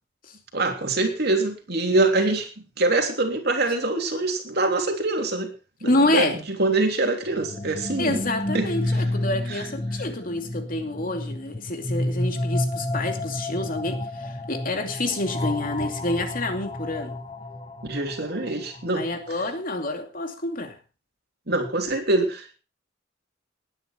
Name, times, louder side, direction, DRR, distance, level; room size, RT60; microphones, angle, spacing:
voice 1, 0.5-2.5 2.8-5.5 5.8-6.3 6.6-8.2 8.5-9.0 9.5-9.7 17.8-19.1 21.5-22.6, right 2 dB, 55° right, 3.3 m, -24 dB
voice 2, 5.8-6.4 8.0-17.2 18.9-20.8, left 2 dB, 45° left, 2.6 m, -27 dB
sound 1, 7.3-19.1, left 1 dB, 30° left, 1.5 m, -30 dB
19.5 x 9.6 x 4.6 m
head